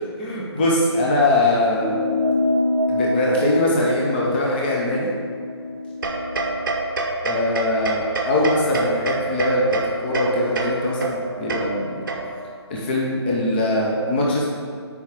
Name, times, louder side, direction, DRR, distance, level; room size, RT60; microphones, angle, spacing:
voice 1, 0.2-2.0 2.9-5.1 7.2-12.0 12.7-14.5, left 1 dB, 20° left, -3 dB, 0.7 m, -21 dB
sound 1, 1.7-6.5, left 2 dB, ahead, 1.2 m, -25 dB
sound 2, 6.0-12.6, right 2 dB, 45° right, 0.7 m, -27 dB
5.2 x 4.9 x 4.9 m, 2.1 s
figure-of-eight pair, 155°, 14 cm